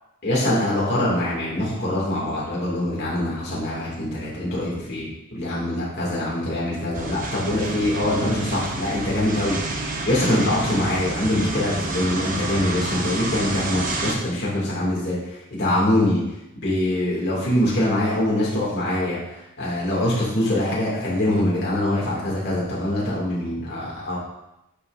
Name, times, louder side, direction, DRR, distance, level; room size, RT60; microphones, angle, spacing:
voice 1, 0.2-5.0 5.3-16.2 16.6-24.2, left 1 dB, 50° left, -6 dB, 1.9 m, -24 dB
sound 1, 6.9-14.1, right 2 dB, 40° right, 0.7 m, -29 dB
9.6 x 5.0 x 2.4 m, 0.89 s
head